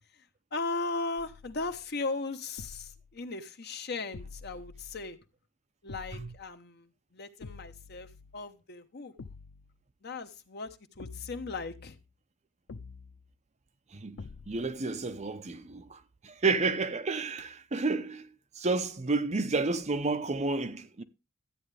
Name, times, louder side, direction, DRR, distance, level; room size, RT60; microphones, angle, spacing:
voice 1, 0.5-5.2 5.8-9.1 10.0-12.0, left 3 dB, 55° left, 1.0 m, -37 dB
sound 1, 1.2-1.9 2.6-3.2 4.1-5.2 5.9-6.5 7.4-8.5 9.2-9.8 11.0-12.1 12.7-13.3 14.2-14.8, left 4 dB, 85° left, 0.5 m, -48 dB
voice 2, 14.5-16.0 16.2-18.3 18.6-21.0, right 3 dB, 35° right, 0.7 m, -30 dB
13.0 x 8.6 x 3.4 m
head